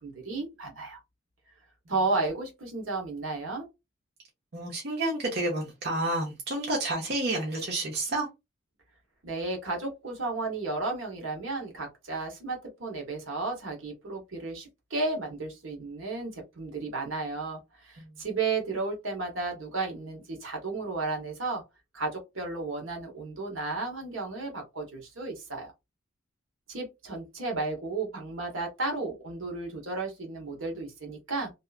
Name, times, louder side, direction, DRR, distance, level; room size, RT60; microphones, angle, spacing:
voice 1, 0.0-1.0 1.9-3.7 9.2-21.6 21.9-25.7 26.7-31.5, right 3 dB, 75° right, 1.1 m, -33 dB
voice 2, 4.5-8.3 18.0-18.1, right 2 dB, 50° right, 0.7 m, -30 dB
2.7 x 2.3 x 2.4 m
head